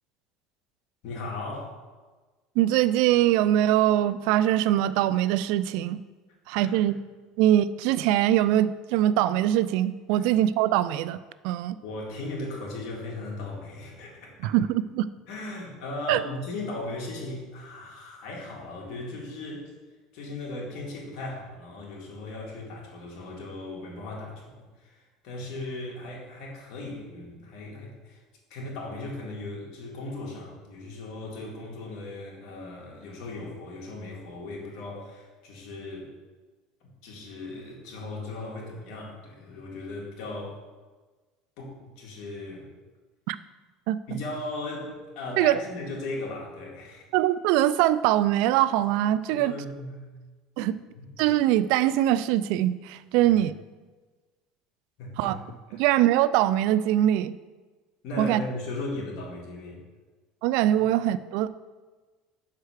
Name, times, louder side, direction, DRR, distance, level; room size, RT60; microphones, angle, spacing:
voice 1, 1.0-1.8 6.5-6.9 10.2-10.3 11.8-14.5 15.3-19.7 20.1-28.2 28.5-36.1 37.0-40.6 41.6-42.7 44.1-47.0 49.3-50.1 50.6-51.1 53.2-53.3 55.0-55.4 55.7-55.8 58.0-59.8, left 2 dB, 65° left, -2 dB, 2.3 m, -37 dB
voice 2, 2.6-6.0 6.5-7.0 7.4-11.2 11.4-11.8 14.4-15.1 16.1-16.2 43.3-43.4 43.9-44.2 45.4-45.6 47.1-49.5 50.6-50.8 51.2-53.5 55.2-55.4 55.7-57.3 58.2-58.4 60.4-61.5, right 13 dB, 70° right, 16 dB, 0.3 m, -22 dB
5.6 x 4.8 x 6.4 m, 1.3 s
supercardioid pair, 120°, 0 cm